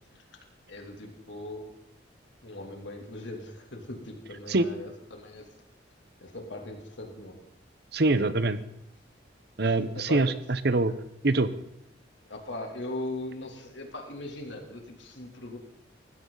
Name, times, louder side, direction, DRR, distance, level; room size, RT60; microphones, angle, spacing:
voice 1, 0.1-1.8 2.4-5.5 6.2-7.4 9.6-10.4 12.2-15.6, left 1 dB, 70° left, 2 dB, 3.0 m, -40 dB
voice 2, 7.9-8.6 9.6-10.9 11.2-11.5, right 2 dB, 55° right, 13 dB, 0.9 m, -24 dB
19.5 x 15.5 x 4.0 m, 0.78 s
head